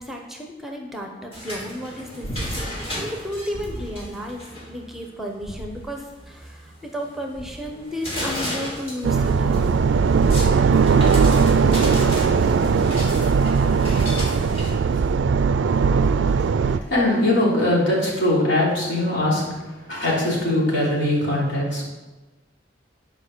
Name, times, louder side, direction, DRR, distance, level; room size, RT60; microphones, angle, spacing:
voice 1, 0.0-4.4 4.7-9.7, equal, ahead, 2 dB, 0.8 m, -33 dB
sound 1, 1.3-14.7, left 1 dB, 30° left, 3.0 m, -35 dB
sound 2, 2.2-2.9 3.5-4.1 5.4-6.1 7.3-7.8 9.3-9.7 12.1-12.2, equal, 50° left, 1.9 m, -35 dB
sound 3, 9.0-16.8, right 5 dB, 80° right, 0.4 m, -19 dB
voice 2, 16.6-19.5 19.9-21.9, left 1 dB, 70° left, -5 dB, 3.3 m, -21 dB
10.0 x 5.0 x 6.1 m, 1.2 s
head